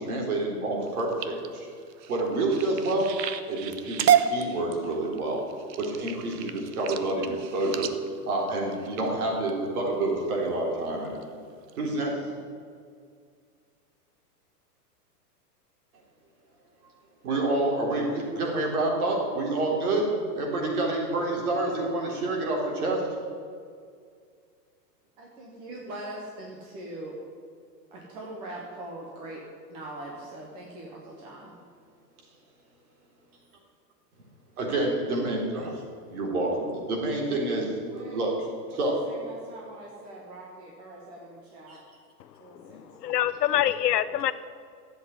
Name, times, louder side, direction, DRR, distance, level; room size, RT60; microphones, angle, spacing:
voice 1, 0.0-1.7 2.1-3.2 3.5-5.4 5.8-7.9 8.3-11.2 11.8-12.2 17.2-23.1 34.6-35.8 36.1-39.0 41.7-41.8, right 2 dB, 60° right, -1 dB, 3.9 m, -28 dB
sound 1, 0.8-9.5 10.1-10.4 10.9-11.2 11.7-11.8 12.1-12.2, right 9 dB, 80° right, 1.1 m, -30 dB
voice 2, 25.2-27.1 27.9-29.4 29.7-31.5 37.9-38.3 38.8-41.8 42.4-43.2, right 1 dB, 10° right, -2 dB, 0.5 m, -42 dB
voice 3, 42.5-44.3, left 12 dB, 75° left, 14 dB, 0.9 m, -26 dB
11.0 x 8.0 x 9.4 m, 2.2 s
hypercardioid pair, 160°, 49 cm